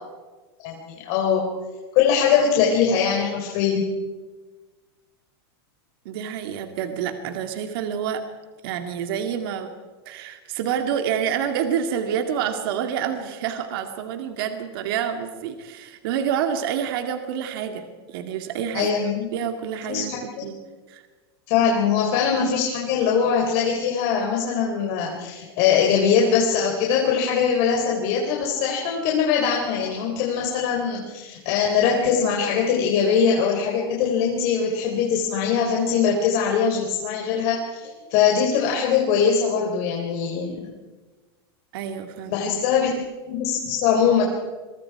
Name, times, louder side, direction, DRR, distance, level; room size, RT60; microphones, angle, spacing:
voice 1, 0.6-1.4 1.9-3.8 18.7-19.3 19.9-20.5 21.5-40.7 42.3-44.2, left 7 dB, 45° left, 0 dB, 3.8 m, -22 dB
voice 2, 6.1-8.2 8.6-9.7 10.1-19.0 19.3-20.1 20.4-20.6 20.9-21.0 41.7-42.4, right 8 dB, 60° right, 6 dB, 2.3 m, -28 dB
28.0 x 23.5 x 4.8 m, 1.3 s
supercardioid pair, 150°, 14 cm